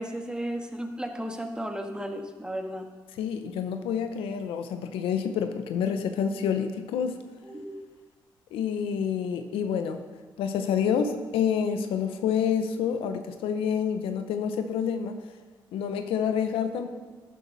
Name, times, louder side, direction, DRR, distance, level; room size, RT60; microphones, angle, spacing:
voice 1, 0.0-2.9 7.4-7.8, equal, 10° right, 4 dB, 1.7 m, -34 dB
voice 2, 3.2-7.2 8.5-10.0 10.4-15.2 15.7-16.9, left 7 dB, 90° left, 8 dB, 0.8 m, -28 dB
12.5 x 10.0 x 4.0 m, 1.4 s
supercardioid pair, 55°, 9 cm